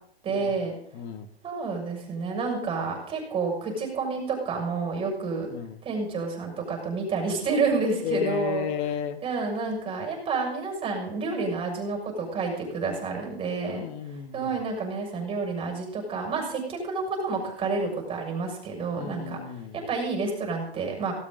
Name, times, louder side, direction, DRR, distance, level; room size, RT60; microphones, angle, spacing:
voice 1, 0.2-0.7 1.4-5.5 5.8-8.7 9.2-13.8 14.3-19.4 19.7-21.1, right 4 dB, 15° right, 2 dB, 6.2 m, -29 dB
voice 2, 0.9-1.3 5.5-5.8 8.0-9.2 13.6-14.6 18.9-19.8, left 9 dB, 30° left, 10 dB, 1.7 m, -33 dB
18.0 x 17.5 x 3.9 m, 0.62 s
hypercardioid pair, 145°, 31 cm